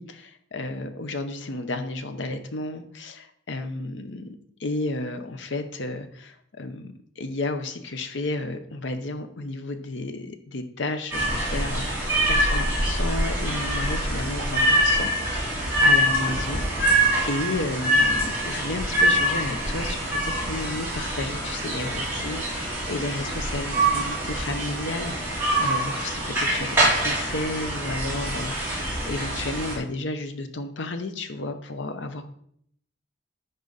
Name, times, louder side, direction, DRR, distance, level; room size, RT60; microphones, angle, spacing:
voice 1, 0.0-32.3, left 2 dB, 70° left, 8 dB, 0.8 m, -32 dB
sound 1, 11.1-29.8, right 1 dB, 15° right, 2.6 m, -24 dB
10.5 x 3.9 x 4.0 m, 0.67 s
head